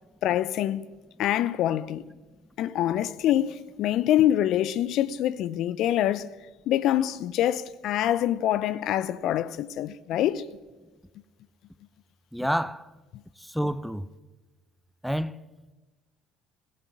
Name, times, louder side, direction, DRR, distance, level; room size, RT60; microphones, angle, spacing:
voice 1, 0.2-0.9 1.2-2.1 2.6-6.3 6.7-10.5, left 12 dB, 55° left, 0.6 m, -25 dB
voice 2, 12.3-12.9 13.4-14.1 15.0-15.4, equal, ahead, 0.8 m, -28 dB
22.0 x 16.0 x 7.4 m
figure-of-eight pair, 60°, 0 cm